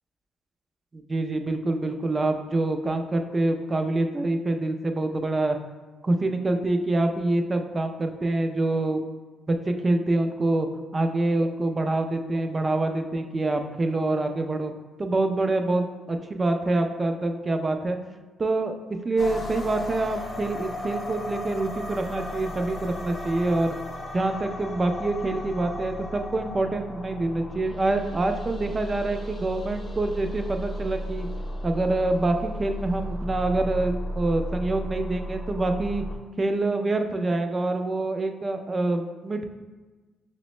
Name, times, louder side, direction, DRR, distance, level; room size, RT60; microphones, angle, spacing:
voice 1, 0.9-5.6 6.0-9.0 9.5-10.7 10.9-14.7 15.0-18.0 18.4-18.8 19.0-23.7 24.1-31.3 31.6-36.0 36.4-39.5, right 2 dB, 30° right, 6 dB, 0.4 m, -26 dB
sound 1, 19.2-36.2, left 1 dB, 35° left, 0.6 m, -35 dB
5.9 x 2.0 x 3.0 m, 1.3 s
cardioid pair, 90°, 0 cm